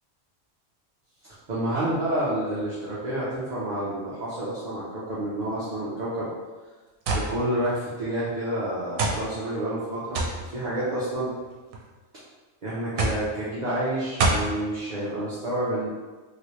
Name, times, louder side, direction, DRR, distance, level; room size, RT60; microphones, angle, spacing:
voice 1, 1.5-6.3 7.1-10.2 10.5-11.3 12.6-15.9, right 1 dB, 45° right, -9 dB, 0.7 m, -29 dB
sound 1, 7.1-7.3 8.2-8.3 9.0-9.2 10.1-10.4 11.4-11.8 13.0-13.3 14.2-14.5, right 2 dB, 85° right, 1.1 m, -24 dB
3.1 x 2.8 x 3.0 m, 1.3 s
omnidirectional pair, 1.4 m